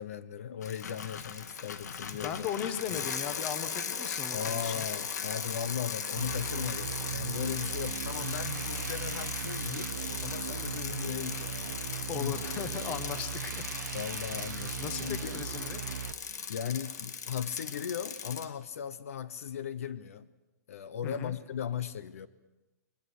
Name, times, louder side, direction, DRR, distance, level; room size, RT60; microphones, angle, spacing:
voice 1, 0.0-2.5 2.9-3.0 4.3-11.6 12.2-12.4 13.9-15.4 16.5-20.3 20.7-22.3, left 8 dB, 55° left, 16 dB, 1.0 m, -37 dB
Bicycle, 0.6-18.5, left 6 dB, 70° left, 2.0 m, -38 dB
voice 2, 2.2-4.9 12.1-14.0 14.8-15.9 21.0-21.4, left 8 dB, 15° left, 12 dB, 1.0 m, -38 dB
sound 1, 6.2-16.1, right 9 dB, 80° right, 1.0 m, -38 dB
22.0 x 21.0 x 8.0 m, 1.1 s
hypercardioid pair, 180°, 9 cm